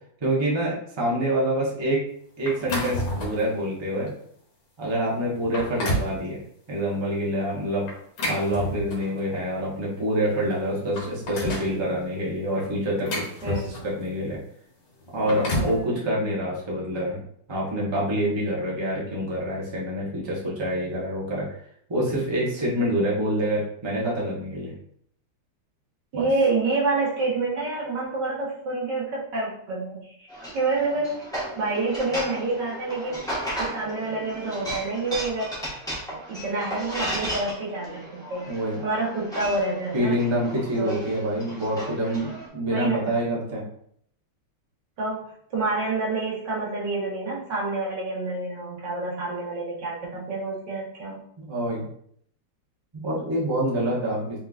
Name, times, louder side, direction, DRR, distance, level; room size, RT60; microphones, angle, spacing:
voice 1, 0.2-2.0 2.4-4.1 4.8-6.4 6.7-7.9 8.2-14.4 15.1-17.2 17.5-21.5 21.9-24.7 26.1-26.3 38.5-38.8 39.9-43.6 51.4-51.9 52.9-54.4, equal, 20° right, -5 dB, 0.7 m, -26 dB
sound 1, 2.5-3.5 4.1-4.2 4.9-5.0 5.4-6.2 7.9-9.2 10.3-10.4 10.7-11.7 12.6-14.0 15.0-15.8, left 1 dB, 80° left, 1.8 m, -30 dB
voice 2, 15.6-16.0 26.1-30.3 30.5-31.2 31.6-33.2 33.6-35.5 36.1-38.5 38.8-40.2 40.8-41.0 42.7-43.0 45.0-45.2 45.5-51.2, right 3 dB, 60° right, -5 dB, 1.9 m, -28 dB
sound 2, 30.3-42.5, right 1 dB, ahead, 1.0 m, -35 dB
4.3 x 3.7 x 2.5 m, 0.66 s
omnidirectional pair, 2.2 m